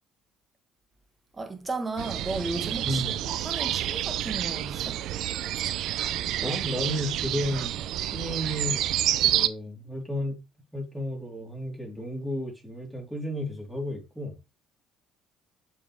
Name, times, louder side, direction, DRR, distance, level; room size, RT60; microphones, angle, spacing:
voice 1, 1.3-5.0, right 3 dB, 25° right, 1.6 m, -34 dB
sound 1, 2.0-9.5, right 12 dB, 65° right, 0.4 m, -29 dB
voice 2, 6.4-8.8 9.2-10.4 10.7-14.4, equal, 5° right, 3.6 m, -32 dB
7.0 x 5.2 x 3.3 m
hypercardioid pair, 55°, 0 cm